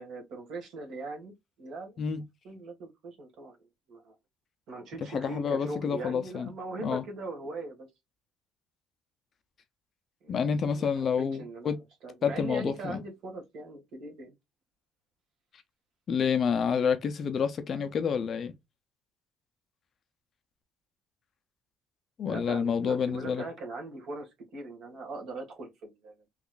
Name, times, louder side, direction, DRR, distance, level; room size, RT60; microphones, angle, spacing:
voice 1, 0.0-2.0 2.4-3.6 3.9-4.1 4.7-7.9 10.2-10.9 11.2-14.3 22.3-26.1, right 2 dB, 55° right, 1.6 m, -40 dB
voice 2, 5.0-6.5 6.8-7.0 10.3-11.8 12.2-13.0 16.1-18.5 22.2-23.4, left 6 dB, 35° left, 0.4 m, -28 dB
3.7 x 3.0 x 2.3 m
cardioid pair, 175°, 0 cm